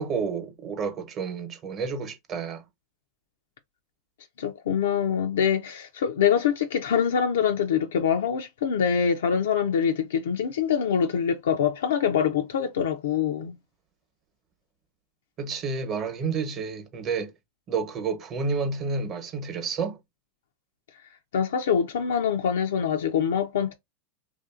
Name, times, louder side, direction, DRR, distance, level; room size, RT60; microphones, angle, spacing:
voice 1, 0.0-2.6 15.4-17.3 17.7-20.0, right 5 dB, 35° right, 0.9 m, -30 dB
voice 2, 4.4-13.6 21.3-23.7, left 7 dB, 85° left, 0.4 m, -24 dB
2.7 x 2.5 x 2.4 m
hypercardioid pair, 115°, 0 cm